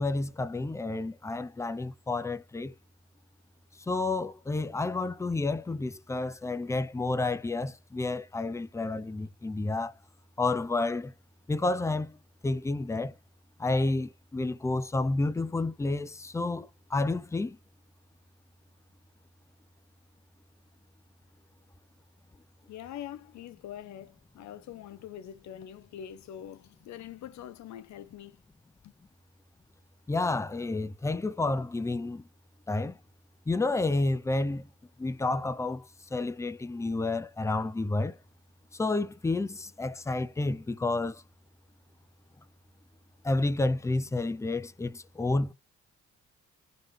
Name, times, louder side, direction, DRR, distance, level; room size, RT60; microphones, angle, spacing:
voice 1, 0.0-2.7 3.9-9.9 10.4-11.1 11.5-12.1 12.4-13.1 13.6-17.6 30.1-32.2 32.7-33.0 33.5-34.7 35.0-35.8 36.1-38.2 38.7-41.2 43.2-45.5, left 2 dB, 10° left, 0.4 m, -30 dB
voice 2, 22.7-28.4 28.8-28.9, left 10 dB, 70° left, 0.7 m, -44 dB
4.0 x 3.3 x 3.2 m
cardioid pair, 90°, 30 cm